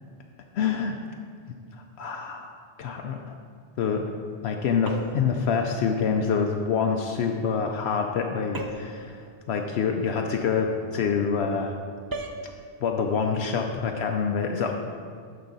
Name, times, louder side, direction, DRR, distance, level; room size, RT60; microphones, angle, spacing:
voice 1, 0.5-1.0 2.0-2.5 2.8-3.2 3.8-4.0 4.4-11.7 12.8-14.7, left 6 dB, 70° left, 3 dB, 0.8 m, -26 dB
sound 1, 4.8-5.3 8.5-9.0 12.1-12.4, right 3 dB, 40° right, 0.3 m, -35 dB
12.0 x 4.9 x 3.9 m, 2.1 s
omnidirectional pair, 1.2 m